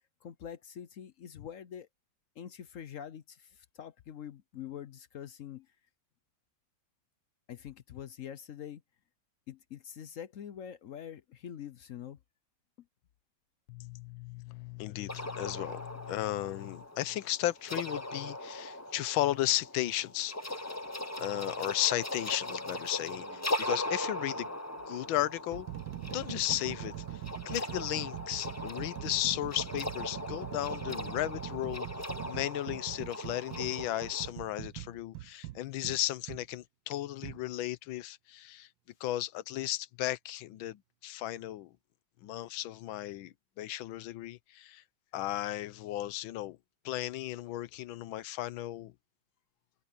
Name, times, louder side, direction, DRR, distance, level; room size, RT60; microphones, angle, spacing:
voice 1, 0.2-1.9 2.4-5.7 7.5-8.8 9.5-12.2, left 9 dB, 65° left, 0.8 m, -45 dB
voice 2, 13.7-20.7 21.2-24.5 24.9-25.7 26.1-26.9 27.5-31.9 32.3-38.7 39.0-41.7 42.2-44.8 45.1-46.6 46.8-48.9, left 14 dB, 90° left, 1.5 m, -35 dB
sound 1, 15.1-34.3, left 1 dB, 25° left, 0.3 m, -39 dB
sound 2, 23.2-23.5 24.4-24.5 25.2-36.5 37.2-37.4, right 14 dB, 75° right, 1.4 m, -42 dB
omnidirectional pair, 2.2 m